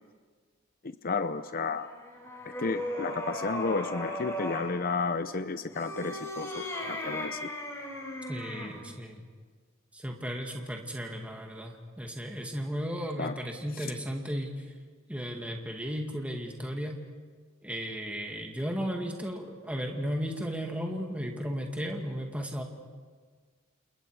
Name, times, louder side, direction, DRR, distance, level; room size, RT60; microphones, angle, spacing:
voice 1, 0.8-1.9 2.6-7.5 13.2-13.4 13.7-13.9, left 4 dB, 45° left, 10 dB, 0.7 m, -32 dB
sound 1, 1.7-4.7 5.7-8.8, left 1 dB, 15° left, 4.6 m, -37 dB
voice 2, 8.3-9.2 9.9-14.5 15.1-17.0 17.6-22.6, equal, 5° right, 1 dB, 2.1 m, -35 dB
29.5 x 28.5 x 4.8 m, 1.5 s
head